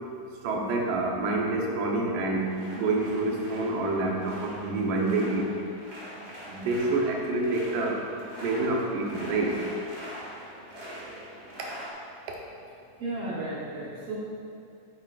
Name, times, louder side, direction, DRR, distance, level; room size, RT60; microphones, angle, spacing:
voice 1, 0.4-5.5 6.5-8.0 8.4-9.6, right 2 dB, 85° right, -1 dB, 2.6 m, -27 dB
sound 1, 2.3-11.9, equal, 40° right, 1.0 m, -43 dB
voice 2, 13.0-14.1, right 2 dB, 60° right, -7 dB, 1.7 m, -34 dB
8.7 x 7.8 x 2.4 m, 2.7 s
omnidirectional pair, 3.7 m